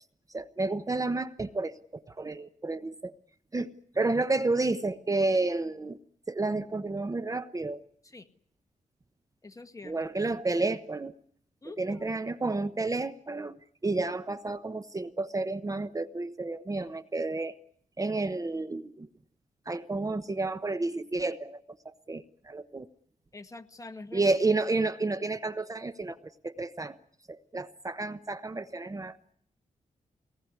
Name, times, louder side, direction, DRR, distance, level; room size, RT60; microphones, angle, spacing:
voice 1, 0.3-3.1 3.5-6.0 6.3-7.8 9.8-11.1 11.8-13.6 13.8-17.6 18.0-19.1 19.7-22.9 24.1-27.0 27.3-29.2, right 3 dB, 25° right, 12 dB, 0.9 m, -31 dB
voice 2, 9.4-10.0 11.6-12.2 23.3-24.3, left 3 dB, 25° left, 7 dB, 1.7 m, -46 dB
24.0 x 19.0 x 9.7 m, 0.67 s
cardioid pair, 95°, 13 cm